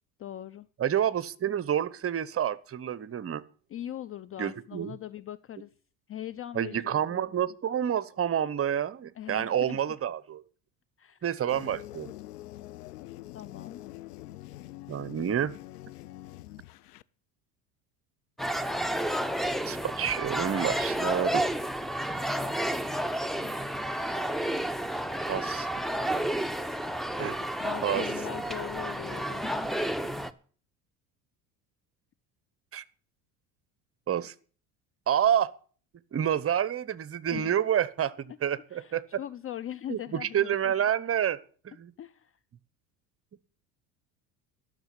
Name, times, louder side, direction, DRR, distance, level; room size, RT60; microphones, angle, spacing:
voice 1, 0.2-0.7 3.7-5.7 6.1-7.2 9.2-9.8 11.0-11.2 13.3-13.8 27.6-29.4 37.3-37.6 38.7-40.7 42.0-42.3, left 11 dB, 30° left, 16 dB, 0.5 m, -40 dB
voice 2, 0.8-3.4 4.4-4.9 6.5-10.4 11.2-12.1 14.9-15.6 19.7-21.5 25.3-25.7 27.2-27.4 27.8-28.0 32.7-32.8 34.1-34.3 35.1-35.5 36.1-39.2 39.9-41.4 41.6-41.9, right 9 dB, 30° right, 19 dB, 0.9 m, -28 dB
sound 1, 11.5-17.0, left 16 dB, 85° left, 0.6 m, -45 dB
sound 2, 18.4-30.3, right 1 dB, ahead, 0.8 m, -31 dB
12.0 x 6.8 x 8.9 m, 0.43 s
hypercardioid pair, 75°, 45 cm